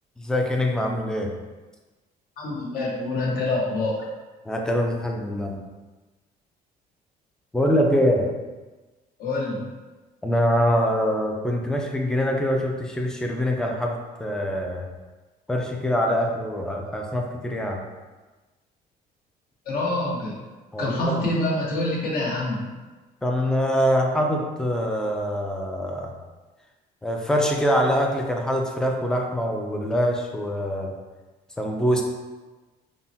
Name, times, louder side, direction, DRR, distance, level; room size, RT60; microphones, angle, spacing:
voice 1, 0.2-1.3 4.5-5.6 7.5-8.3 10.2-14.9 15.5-17.8 20.7-21.2 23.2-26.1 27.0-30.9 31.6-32.0, equal, 5° left, 1 dB, 0.4 m, -24 dB
voice 2, 2.4-4.1 9.2-9.6 19.7-20.4 20.8-22.6, left 2 dB, 60° left, -4 dB, 1.0 m, -26 dB
3.7 x 2.0 x 2.7 m, 1.2 s
cardioid pair, 110°, 17 cm